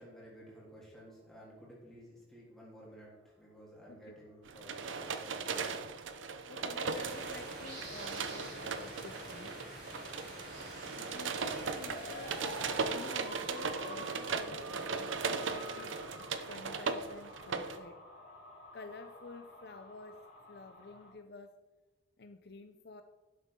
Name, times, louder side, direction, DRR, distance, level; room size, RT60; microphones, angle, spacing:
voice 1, 0.0-6.7, equal, ahead, -6 dB, 3.3 m, -54 dB
sound 1, 4.4-17.8, right 5 dB, 90° right, 0.8 m, -38 dB
voice 2, 6.5-9.5 10.0-10.1 11.0-12.4 12.9-16.0 16.4-18.0 18.7-21.6 22.2-23.0, left 3 dB, 55° left, 8 dB, 0.5 m, -50 dB
sound 2, 7.0-12.8, right 1 dB, 45° right, 3.5 m, -48 dB
sound 3, 11.8-21.1, left 1 dB, 75° left, 3.8 m, -50 dB
11.0 x 8.0 x 3.7 m, 1.2 s
head